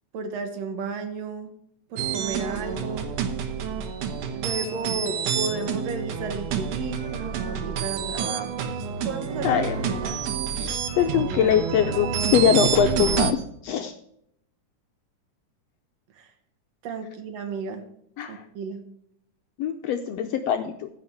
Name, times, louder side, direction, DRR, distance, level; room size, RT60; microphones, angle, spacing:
voice 1, 0.1-1.5 1.9-3.1 4.3-9.7 10.0-10.3 16.2-16.3 16.8-17.8 18.3-18.8, right 4 dB, 65° right, 5 dB, 2.5 m, -33 dB
sound 1, 2.0-13.3, right 7 dB, 80° right, 2.5 m, -28 dB
voice 2, 9.4-10.0 10.6-13.4 13.6-13.9 18.2-18.4 19.6-20.9, left 8 dB, 80° left, 6 dB, 1.5 m, -23 dB
15.0 x 5.6 x 4.8 m, 0.73 s
omnidirectional pair, 3.5 m